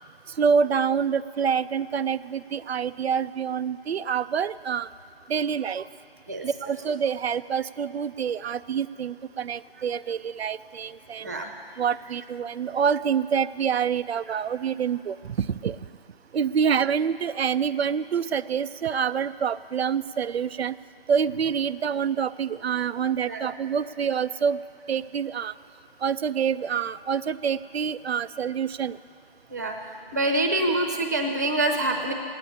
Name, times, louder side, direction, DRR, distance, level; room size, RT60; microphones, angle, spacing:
voice 1, 0.4-4.9 5.3-5.9 6.4-11.3 11.8-15.8 16.3-20.7 21.1-24.6 24.9-25.5 26.0-29.0, right 7 dB, 85° right, 13 dB, 0.5 m, -26 dB
voice 2, 30.1-32.1, right 2 dB, 15° right, 3 dB, 0.7 m, -25 dB
17.0 x 9.7 x 8.5 m, 2.6 s
hypercardioid pair, 170°, 31 cm